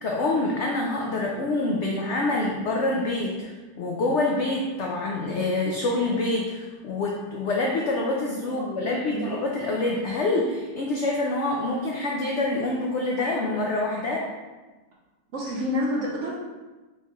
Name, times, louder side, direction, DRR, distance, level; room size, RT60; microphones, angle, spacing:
voice 1, 0.0-14.3, left 2 dB, 80° left, -2 dB, 0.6 m, -26 dB
voice 2, 8.5-9.3 15.3-16.4, left 1 dB, 55° right, -4 dB, 0.9 m, -29 dB
4.6 x 2.3 x 4.2 m, 1.2 s
omnidirectional pair, 1.8 m